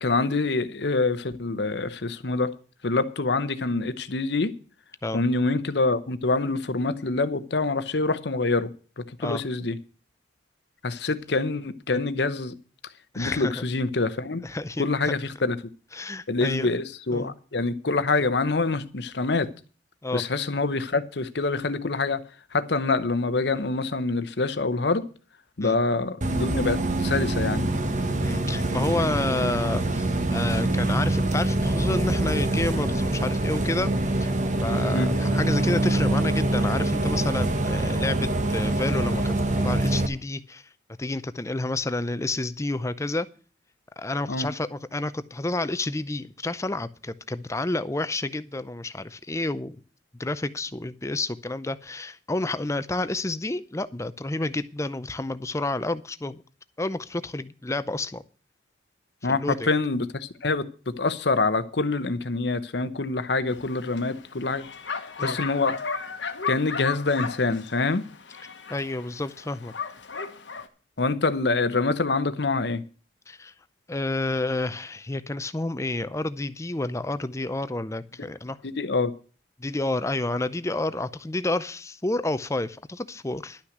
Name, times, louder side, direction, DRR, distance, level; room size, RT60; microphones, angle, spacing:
voice 1, 0.0-2.5 2.8-4.5 5.1-8.7 9.0-9.8 10.8-12.5 13.2-14.4 14.8-15.6 16.3-19.5 20.1-22.2 22.5-25.0 25.6-27.7 34.9-35.1 44.3-44.5 59.2-64.6 65.2-66.1 66.5-68.1 71.0-72.8 78.6-79.1, left 3 dB, 65° left, 0.9 m, -26 dB
voice 2, 13.1-13.6 14.4-15.1 15.9-16.7 17.1-17.3 20.0-20.2 25.6-25.8 28.2-33.9 34.2-34.4 34.6-40.6 41.0-43.3 44.0-49.8 50.2-56.4 56.8-58.2 59.3-59.7 65.2-65.4 68.7-69.7 73.3-73.5 73.9-78.6 79.6-83.6, left 2 dB, 15° left, 0.5 m, -30 dB
Bus, 26.2-40.1, right 1 dB, 40° right, 1.1 m, -25 dB
Bark, 63.5-70.7, left 5 dB, 80° left, 1.3 m, -35 dB
11.5 x 5.9 x 7.9 m
head